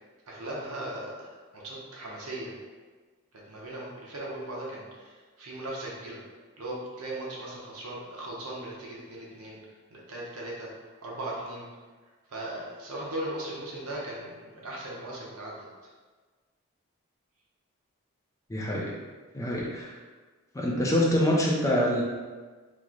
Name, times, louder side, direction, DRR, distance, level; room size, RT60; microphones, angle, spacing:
voice 1, 0.3-2.5 3.3-6.2 6.6-9.6 9.9-10.7 11.0-11.7 12.3-15.7, right 1 dB, 85° right, -4 dB, 0.8 m, -38 dB
voice 2, 18.5-18.9 19.3-19.9 20.5-22.0, equal, 15° left, -3 dB, 0.4 m, -25 dB
3.0 x 2.1 x 3.6 m, 1.4 s
head